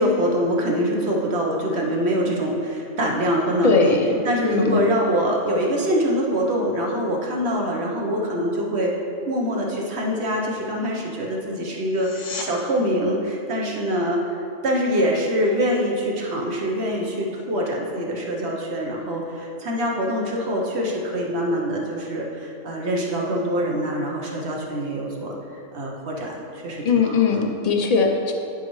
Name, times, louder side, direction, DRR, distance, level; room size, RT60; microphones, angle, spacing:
voice 1, 0.0-4.0 4.2-8.9 9.3-27.5, equal, 55° right, -1 dB, 1.2 m, -24 dB
voice 2, 3.6-4.2 4.4-4.9 26.8-28.3, left 4 dB, 45° left, 2 dB, 0.5 m, -20 dB
sound 1, 11.9-12.5 23.9-24.0, left 4 dB, 70° left, 1.2 m, -34 dB
10.5 x 5.4 x 3.1 m, 2.7 s
omnidirectional pair, 1.4 m